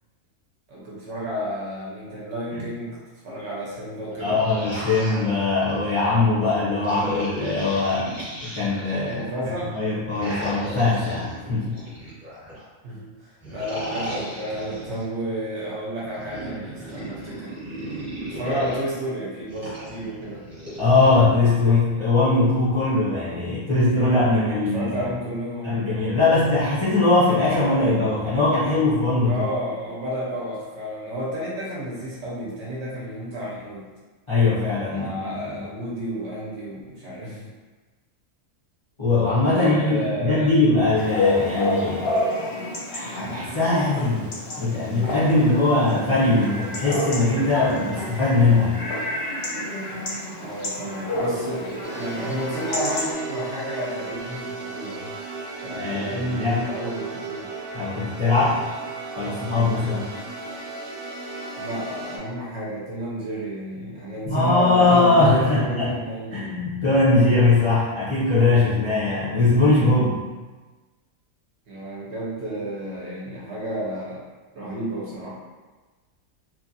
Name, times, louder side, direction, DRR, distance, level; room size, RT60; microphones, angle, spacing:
voice 1, 0.7-3.0 3.2-4.4 9.1-9.8 12.8-17.5 18.3-20.4 24.4-25.8 29.3-33.8 34.9-37.5 39.5-40.5 50.4-55.2 55.6-57.5 61.6-66.4 71.7-74.2 74.5-75.3, equal, 60° right, -6 dB, 0.8 m, -31 dB
sound 1, 4.1-6.0 6.8-9.2 10.1-12.6 13.4-15.0 16.0-18.8 19.5-21.2, equal, 10° right, 0.9 m, -35 dB
voice 2, 4.2-8.1 8.4-9.2 9.7-11.8 20.8-24.9 25.6-29.4 34.3-35.6 39.0-42.1 42.9-44.3 44.6-48.8 55.7-56.6 57.7-58.6 59.2-60.1 64.3-66.0 66.3-70.2, left 3 dB, 35° left, -11 dB, 0.4 m, -21 dB
Chatter / Bark / Livestock farm animals working animals, 40.9-53.1, left 1 dB, 55° left, 0.8 m, -29 dB
sound 2, 51.8-62.2, right 3 dB, 85° right, 1.1 m, -35 dB
2.9 x 2.3 x 2.6 m, 1.3 s
omnidirectional pair, 1.5 m